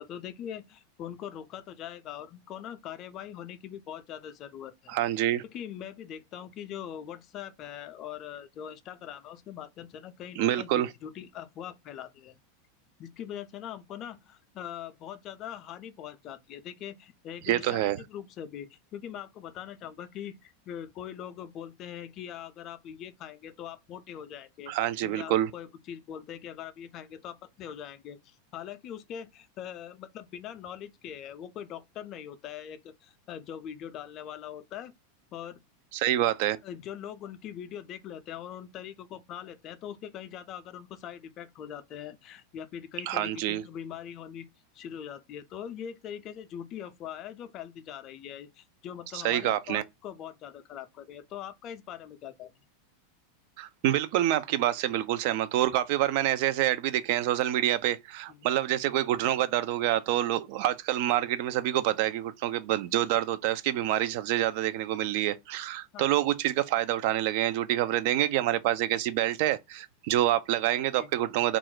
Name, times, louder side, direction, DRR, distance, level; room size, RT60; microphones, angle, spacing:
voice 1, 0.0-5.0 5.5-12.4 13.0-24.7 25.0-34.9 35.3-35.6 36.6-44.5 44.7-52.5 58.3-58.5 65.9-66.1 71.0-71.1, left 9 dB, 40° left, 0.4 m, -42 dB
voice 2, 4.9-5.4 10.4-10.9 17.5-18.0 24.7-25.5 35.9-36.6 43.1-43.6 49.2-49.8 53.6-71.6, right 13 dB, 55° right, 0.3 m, -27 dB
2.4 x 2.0 x 3.8 m
hypercardioid pair, 90°, 0 cm